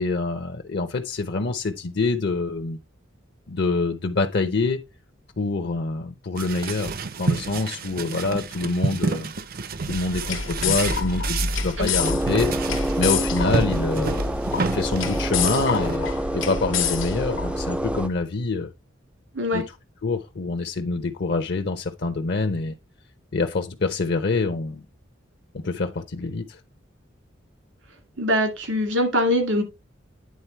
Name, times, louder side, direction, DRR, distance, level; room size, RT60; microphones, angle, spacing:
voice 1, 0.0-2.8 3.5-4.8 5.4-9.3 9.9-18.7 19.5-19.6 20.0-22.7 23.3-24.8 25.5-26.6, left 3 dB, 60° left, 0.7 m, -26 dB
sound 1, 6.4-13.1 13.4-16.0, right 3 dB, 50° right, 0.6 m, -30 dB
sound 2, 9.8-18.0, left 5 dB, 85° left, 1.2 m, -28 dB
sound 3, 12.0-18.1, right 1 dB, 5° right, 0.3 m, -28 dB
voice 2, 28.2-29.6, left 1 dB, 80° right, 2.3 m, -22 dB
9.6 x 3.8 x 4.4 m
head